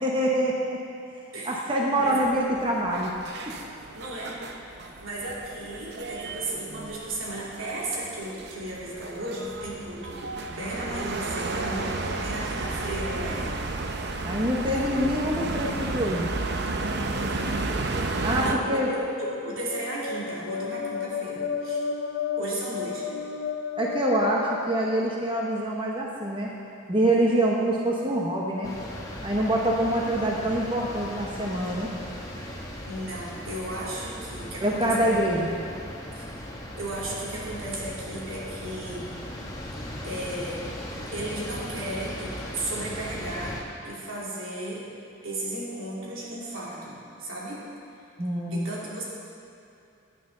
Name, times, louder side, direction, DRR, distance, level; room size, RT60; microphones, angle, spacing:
voice 1, 0.0-0.6 1.4-3.1 14.2-16.3 18.2-18.9 23.8-26.5 26.9-28.7 29.2-31.9 34.6-35.5 48.2-48.7, right 1 dB, 25° right, -2 dB, 1.1 m, -25 dB
voice 2, 1.9-2.3 3.9-4.3 5.0-13.6 14.9-15.0 17.1-17.6 18.4-18.8 19.2-21.8 22.4-23.0 32.9-35.4 36.2-36.3 36.7-39.2 40.0-40.6 41.1-43.6 43.8-44.9 45.2-47.6 48.5-49.0, right 1 dB, 90° right, -6 dB, 3.0 m, -35 dB
sound 1, 2.0-18.6, right 2 dB, 55° right, 0.7 m, -33 dB
sound 2, 18.8-25.4, left 6 dB, 55° left, 0.6 m, -33 dB
sound 3, 28.6-43.6, left 1 dB, 20° left, 1.2 m, -38 dB
15.5 x 9.5 x 3.9 m, 2.8 s
head